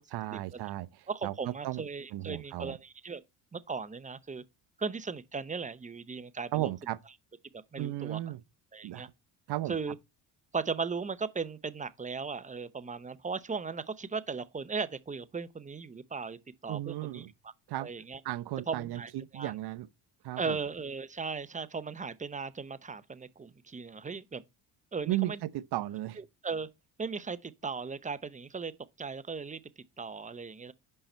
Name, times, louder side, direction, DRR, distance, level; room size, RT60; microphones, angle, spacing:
voice 1, 0.1-1.8 2.1-2.8 6.5-7.0 7.8-8.4 8.8-9.1 9.5-9.8 16.7-17.3 17.7-17.9 18.2-19.9 20.2-20.6 25.1-26.2, right 15 dB, 55° right, 0.8 m, -35 dB
voice 2, 1.1-3.2 3.5-4.4 4.8-6.7 7.7-8.2 8.7-9.1 9.7-10.0 10.5-16.4 16.6-17.3 17.8-18.2 18.7-19.5 20.4-24.4 24.9-25.4 26.2-26.7 27.0-28.7 29.0-29.6 30.0-30.7, right 5 dB, 15° right, 0.6 m, -37 dB
5.7 x 5.5 x 4.3 m
supercardioid pair, 75°, 46 cm